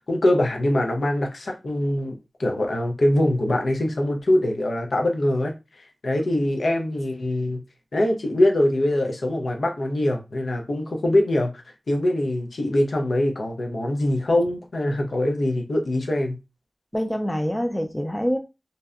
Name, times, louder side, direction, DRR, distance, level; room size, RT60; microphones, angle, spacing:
voice 1, 0.0-7.6 7.9-16.4, left 1 dB, 85° left, 0.5 m, -23 dB
voice 2, 16.9-18.4, equal, 10° left, 0.4 m, -26 dB
2.6 x 2.1 x 2.3 m
wide cardioid pair, 80°, 0 cm